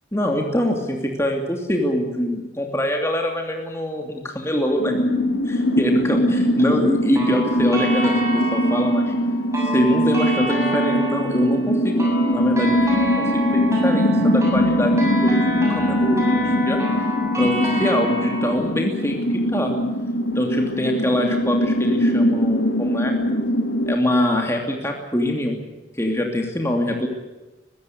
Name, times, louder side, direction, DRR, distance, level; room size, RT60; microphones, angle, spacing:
voice 1, 0.1-4.9 5.5-9.1 9.6-16.8 17.4-19.2 19.5-19.7 20.3-23.1 23.9-25.6 26.0-27.1, left 1 dB, 15° left, 2 dB, 2.8 m, -24 dB
sound 1, 4.8-23.9, equal, 75° left, 2.1 m, -21 dB
sound 2, 7.2-18.5, equal, 15° right, 6.7 m, -29 dB
22.5 x 15.5 x 9.7 m, 1.1 s
head